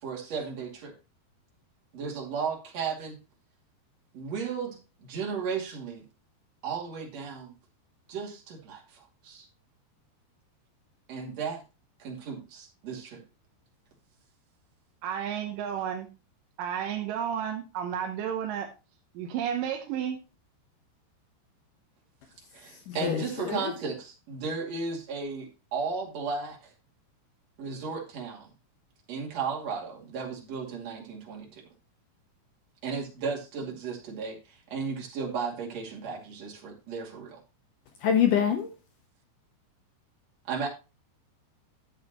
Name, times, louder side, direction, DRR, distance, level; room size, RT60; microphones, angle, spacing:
voice 1, 0.0-0.9 1.9-3.2 4.1-6.0 6.6-7.5 8.1-9.5 11.1-11.6 12.0-13.2 22.5-26.7 27.6-28.5 29.1-31.6 32.8-37.4 40.5-40.7, right 5 dB, 45° right, 3.2 m, -35 dB
voice 2, 15.0-16.1 16.6-18.7 19.1-20.2, right 9 dB, 75° right, 2.1 m, -32 dB
voice 3, 22.9-23.7 38.0-38.7, left 8 dB, 70° left, 2.1 m, -25 dB
11.5 x 7.9 x 3.0 m
omnidirectional pair, 4.9 m